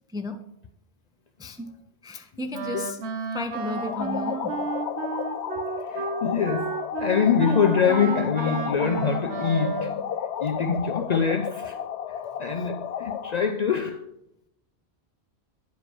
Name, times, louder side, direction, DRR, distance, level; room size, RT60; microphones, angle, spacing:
voice 1, 1.4-1.7 2.0-3.0 3.3-4.6, left 2 dB, 5° right, 0.4 m, -33 dB
Wind instrument woodwind instrument, 2.5-10.1, right 6 dB, 75° right, 1.1 m, -32 dB
sound 1, 3.5-13.5, left 8 dB, 85° left, 0.9 m, -33 dB
voice 2, 5.8-11.8 12.1-14.2, left 6 dB, 55° left, 0.5 m, -25 dB
9.2 x 5.1 x 4.7 m
omnidirectional pair, 1.1 m